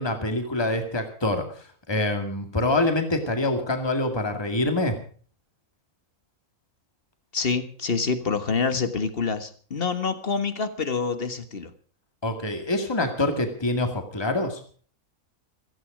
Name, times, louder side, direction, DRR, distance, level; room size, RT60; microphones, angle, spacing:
voice 1, 0.0-1.5 1.9-5.0 12.2-14.6, left 2 dB, 15° left, 5 dB, 2.2 m, -25 dB
voice 2, 7.3-11.7, left 5 dB, 40° left, 10 dB, 1.6 m, -27 dB
16.0 x 15.0 x 5.1 m, 0.44 s
omnidirectional pair, 1.6 m